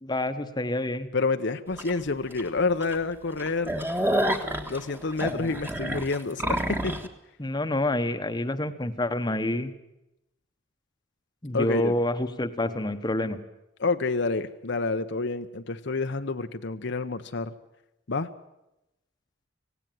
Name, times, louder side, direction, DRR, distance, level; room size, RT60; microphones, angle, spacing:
voice 1, 0.0-1.1 7.4-9.7 11.4-13.4, left 1 dB, 20° left, 9 dB, 1.1 m, -28 dB
voice 2, 1.1-3.8 4.7-7.0 11.5-11.9 13.8-17.5 18.1-18.3, left 3 dB, 60° left, 8 dB, 0.8 m, -28 dB
sound 1, 1.8-1.9 2.4-2.5 2.8-2.9 3.3-7.1, right 1 dB, 10° right, 1.5 m, -28 dB
18.0 x 17.0 x 9.3 m, 0.89 s
head